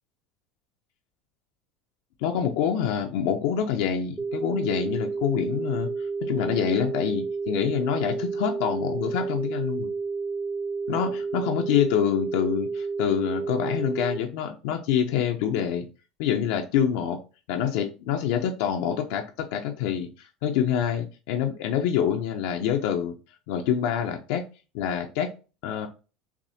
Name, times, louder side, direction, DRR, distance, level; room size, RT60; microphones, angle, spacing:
voice 1, 2.2-9.9 10.9-15.9 16.2-17.2 17.5-23.1 23.5-24.4 24.7-25.3 25.6-25.9, left 9 dB, 75° left, 3 dB, 0.6 m, -26 dB
sound 1, 4.2-14.2, right 4 dB, 10° right, 0.4 m, -30 dB
5.8 x 2.1 x 2.7 m, 0.33 s
cardioid pair, 145°, 0 cm